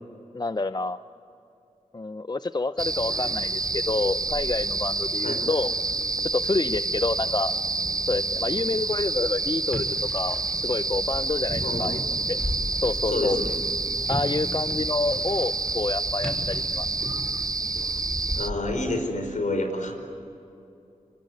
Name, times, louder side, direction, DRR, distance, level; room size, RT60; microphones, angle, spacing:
voice 1, 0.3-1.0 1.9-5.7 6.2-7.5 8.1-12.0 12.3-12.4 12.8-13.4 14.1-16.9, left 3 dB, 30° left, 12 dB, 0.6 m, -28 dB
sound 1, 2.8-18.5, right 3 dB, 25° right, 0.6 m, -28 dB
sound 2, 9.7-18.8, equal, ahead, 6.1 m, -36 dB
voice 2, 11.6-11.9 13.1-13.6 18.4-20.1, left 2 dB, 65° left, 5 dB, 5.1 m, -28 dB
25.0 x 24.5 x 9.4 m, 2.7 s
wide cardioid pair, 65°, 14 cm